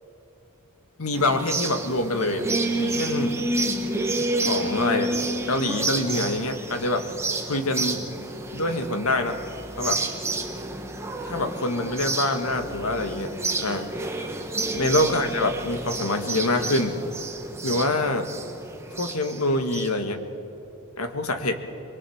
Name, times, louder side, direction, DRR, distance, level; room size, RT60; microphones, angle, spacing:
voice 1, 1.0-2.5 2.8-3.4 4.4-5.1 5.5-7.0 7.5-8.0 8.5-9.4 9.8-10.0 11.2-13.3 13.6-13.9 14.7-17.0 17.6-18.3 19.0-20.2 21.0-21.6, left 2 dB, 75° left, 6 dB, 1.8 m, -25 dB
sound 1, 1.1-19.9, right 2 dB, 10° right, 1.4 m, -30 dB
24.0 x 22.0 x 7.2 m, 2.8 s
head